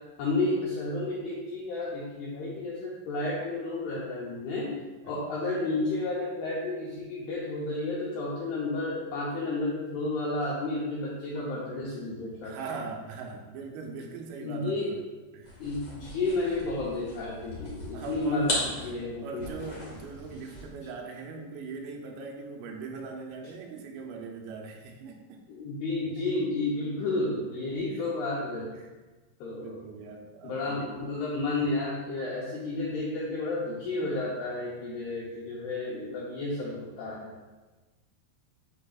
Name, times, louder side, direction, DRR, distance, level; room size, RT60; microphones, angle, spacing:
voice 1, 0.2-4.7 5.0-12.8 14.4-14.9 15.6-19.4 25.5-28.7 29.4-29.7 30.4-37.3, left 2 dB, 85° left, -6 dB, 2.3 m, -31 dB
voice 2, 12.4-15.0 15.3-15.6 17.9-25.4 28.8-28.9 29.6-30.9, right 4 dB, 90° right, 2 dB, 3.5 m, -41 dB
sound 1, 15.4-20.8, left 1 dB, 60° left, 1.6 m, -37 dB
11.5 x 4.0 x 2.4 m, 1.2 s
omnidirectional pair, 5.8 m